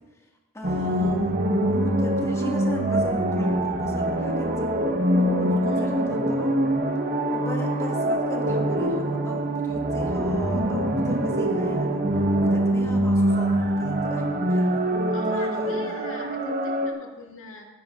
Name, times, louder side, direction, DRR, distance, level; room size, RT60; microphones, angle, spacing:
voice 1, 0.5-1.4 1.7-4.7 5.4-6.5 7.3-12.0 12.4-14.8 15.2-16.0, equal, 15° left, -1 dB, 2.1 m, -37 dB
sound 1, 0.6-16.9, right 1 dB, 45° right, 1.3 m, -24 dB
voice 2, 15.1-17.7, left 2 dB, 65° left, 0 dB, 2.2 m, -41 dB
20.0 x 14.5 x 2.6 m, 1.2 s
head